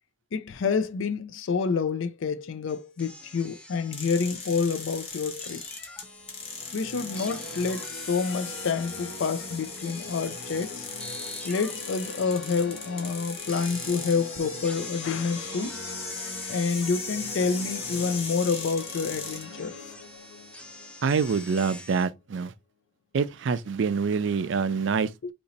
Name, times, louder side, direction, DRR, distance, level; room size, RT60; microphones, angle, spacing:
voice 1, 0.3-5.6 6.7-10.9 11.4-15.8 16.5-19.7 25.2-25.3, left 5 dB, 80° left, 0.4 m, -28 dB
sound 1, 2.7-6.8 7.1-22.1, left 2 dB, 5° left, 0.4 m, -46 dB
sound 2, 3.9-19.4, left 4 dB, 30° left, 0.9 m, -38 dB
sound 3, 6.4-22.4, left 1 dB, 65° left, 0.8 m, -44 dB
voice 2, 21.0-22.5 23.1-25.3, right 5 dB, 70° right, 0.4 m, -26 dB
2.9 x 2.7 x 3.9 m
head